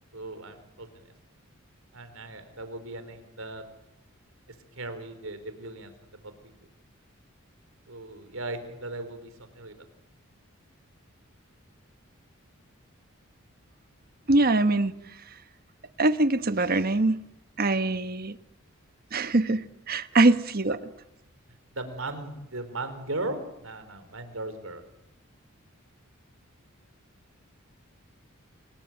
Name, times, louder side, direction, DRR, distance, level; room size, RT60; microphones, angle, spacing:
voice 1, 0.1-1.0 1.9-3.6 4.8-5.9 6.2-6.3 7.9-9.8 20.1-20.2 20.7-20.8 21.7-24.8, right 2 dB, 75° right, 10 dB, 4.3 m, -37 dB
voice 2, 14.3-14.9 16.0-17.2 17.6-18.4 19.1-20.8, right 2 dB, 45° right, 11 dB, 1.2 m, -23 dB
29.0 x 20.5 x 9.2 m, 0.86 s
head